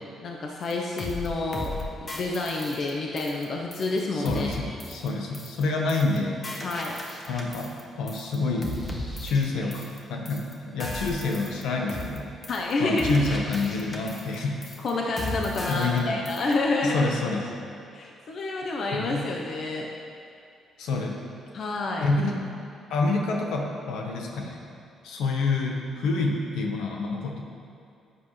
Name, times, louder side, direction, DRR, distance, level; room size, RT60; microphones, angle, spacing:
voice 1, 0.2-1.7 2.0-4.5 6.6-7.0 12.5-13.3 14.8-17.1 17.9-19.9 21.5-22.1, left 2 dB, 60° left, -1 dB, 0.9 m, -28 dB
sound 1, 0.7-0.8 1.0-1.3 1.5-1.8 2.1-3.4 3.7-4.0 4.2-4.5 4.8-5.1 5.3-5.6 5.9-6.2 6.4-7.8 8.1-8.3 8.6-10.0 10.2-10.5 10.8-11.6 11.9-12.2 12.4-12.7 13.0-14.3 14.6-14.9 15.2-16.0 16.2-16.5, left 1 dB, 30° left, 1.5 m, -36 dB
voice 2, 4.1-6.4 7.3-8.7 9.2-12.3 12.8-14.6 15.7-16.3 16.8-17.5 18.9-19.3 20.8-21.2 22.0-22.3 22.9-24.6 25.0-27.4, left 3 dB, 85° left, 1 dB, 1.3 m, -27 dB
13.0 x 8.3 x 3.3 m, 2.4 s
cardioid pair, 90°, 0 cm